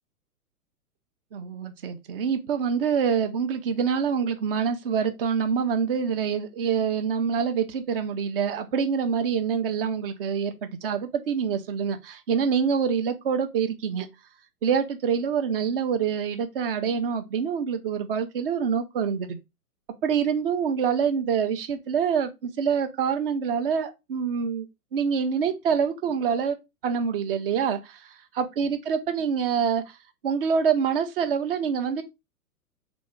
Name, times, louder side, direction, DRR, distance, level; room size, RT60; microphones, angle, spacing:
voice 1, 1.3-14.1 14.6-19.4 20.0-24.7 24.9-26.5 26.8-29.8 30.2-32.0, right 6 dB, 40° right, 0.7 m, -26 dB
3.9 x 3.0 x 3.5 m
figure-of-eight pair, 115°, 46 cm